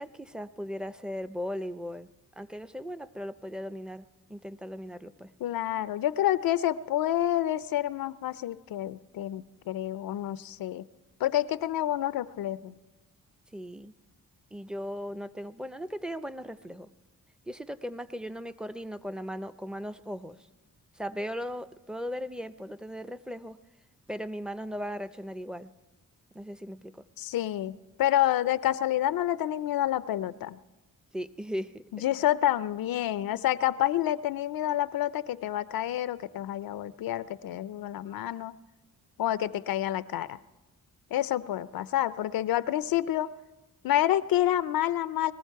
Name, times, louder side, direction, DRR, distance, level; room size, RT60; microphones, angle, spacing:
voice 1, 0.0-2.1 2.4-5.3 13.5-13.9 14.5-16.9 17.5-20.5 20.9-23.6 24.1-25.7 26.3-27.0 31.1-31.8, equal, ahead, 13 dB, 0.5 m, -37 dB
voice 2, 5.4-10.8 11.2-12.7 27.2-27.7 28.0-30.6 32.0-38.6 39.2-40.4 41.1-43.3 43.8-45.3, left 12 dB, 85° left, 15 dB, 0.5 m, -28 dB
20.5 x 14.5 x 4.6 m, 1.1 s
cardioid pair, 80°, 34 cm